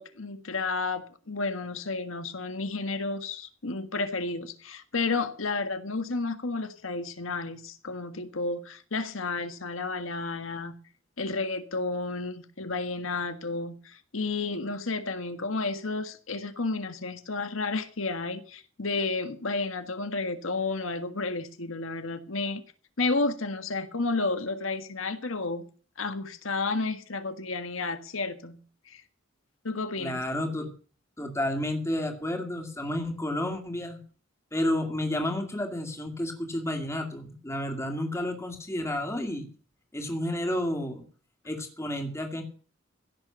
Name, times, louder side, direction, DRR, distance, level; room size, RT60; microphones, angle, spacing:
voice 1, 0.0-10.7 11.2-22.6 23.0-25.6 26.0-28.6 28.9-29.0 29.6-30.2, left 3 dB, 90° left, 1.6 m, -31 dB
voice 2, 30.0-30.7 31.2-34.0 34.5-39.5 39.9-41.0 41.4-42.4, left 1 dB, 15° left, 2.3 m, -31 dB
16.5 x 6.9 x 7.5 m
head